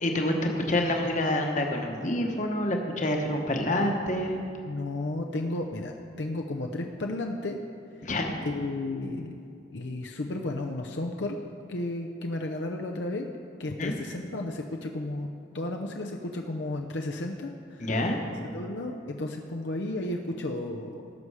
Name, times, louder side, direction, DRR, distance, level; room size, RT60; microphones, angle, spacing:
voice 1, 0.0-4.4 8.0-8.3 13.8-13.9 17.8-18.2, left 1 dB, 40° left, 2 dB, 1.2 m, -27 dB
voice 2, 4.6-5.9 6.2-7.6 8.4-9.3 9.7-11.4 11.7-13.3 13.6-15.3 15.5-17.9 18.5-21.0, left 2 dB, 70° left, 2 dB, 0.7 m, -33 dB
18.0 x 6.8 x 4.8 m, 2.5 s
head